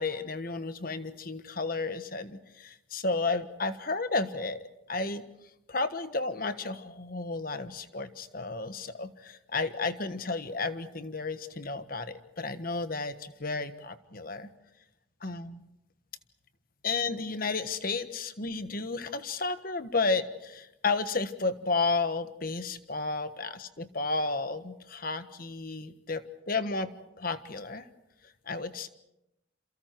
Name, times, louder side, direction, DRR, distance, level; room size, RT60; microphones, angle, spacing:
voice 1, 0.0-5.2 5.7-14.5 15.2-15.6 16.8-26.9 27.2-27.9 28.5-28.9, left 3 dB, 50° left, 10 dB, 1.4 m, -32 dB
28.5 x 28.0 x 4.6 m, 0.89 s
head